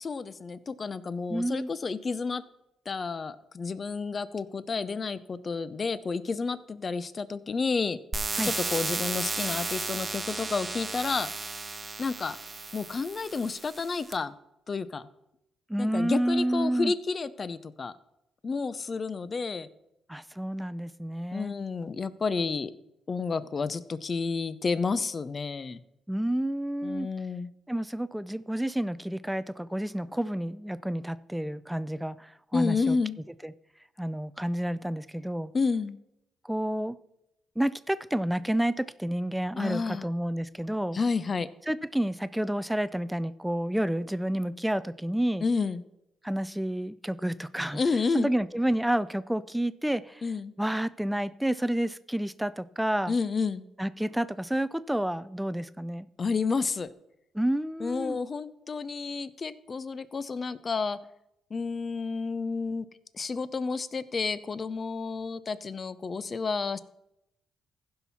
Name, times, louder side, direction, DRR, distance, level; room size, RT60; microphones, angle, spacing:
voice 1, 0.0-2.4 2.9-8.0 8.4-11.3 12.0-12.4 12.7-14.3 14.7-15.1 15.8-17.9 18.4-19.7 21.3-22.7 23.1-25.8 26.8-27.5 32.5-33.2 35.5-36.0 39.6-40.1 40.9-41.5 45.4-45.8 47.7-48.3 50.2-50.5 53.1-53.7 56.2-56.9 57.8-61.0 61.5-62.9 63.1-66.8, left 4 dB, 35° left, 15 dB, 0.6 m, -30 dB
voice 2, 1.3-1.7 8.4-8.5 15.7-16.9 20.1-21.5 26.1-27.1 27.7-33.0 33.4-33.5 34.0-35.5 36.4-37.0 37.6-41.0 41.7-45.4 46.2-47.8 48.1-50.2 50.6-53.1 53.8-56.1 57.3-58.2, right 1 dB, 5° right, 16 dB, 0.4 m, -29 dB
sound 1, 8.1-14.1, right 3 dB, 25° right, 0.9 m, -34 dB
15.5 x 5.7 x 4.2 m, 0.84 s
cardioid pair, 90°, 0 cm